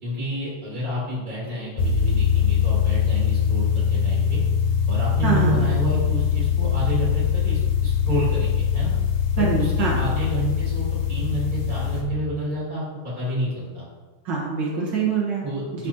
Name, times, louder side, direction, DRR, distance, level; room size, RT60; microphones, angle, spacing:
voice 1, 0.0-4.4 4.9-8.9 9.4-13.9 15.4-15.9, right 1 dB, 25° right, -6 dB, 2.0 m, -29 dB
sound 1, 1.8-12.0, left 8 dB, 55° left, 0.9 m, -22 dB
voice 2, 5.2-5.6 9.4-10.0 14.3-15.4 15.8-15.9, right 5 dB, 70° right, -3 dB, 1.8 m, -24 dB
11.0 x 4.1 x 2.8 m, 1.4 s
omnidirectional pair, 2.0 m